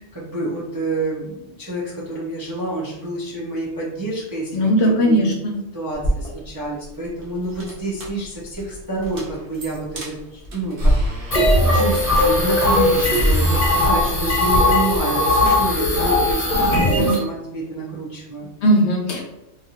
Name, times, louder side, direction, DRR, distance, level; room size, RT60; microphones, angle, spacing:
voice 1, 0.1-5.3 5.7-18.5, right 2 dB, 30° right, -7 dB, 0.4 m, -28 dB
voice 2, 4.5-5.5 17.0-17.1 18.6-19.2, equal, 65° left, 0 dB, 0.9 m, -18 dB
sound 1, 5.9-14.6, equal, 55° right, 0.8 m, -28 dB
sound 2, 11.3-17.2, left 1 dB, 35° left, 0.8 m, -18 dB
2.9 x 2.4 x 2.8 m, 0.92 s
omnidirectional pair, 1.3 m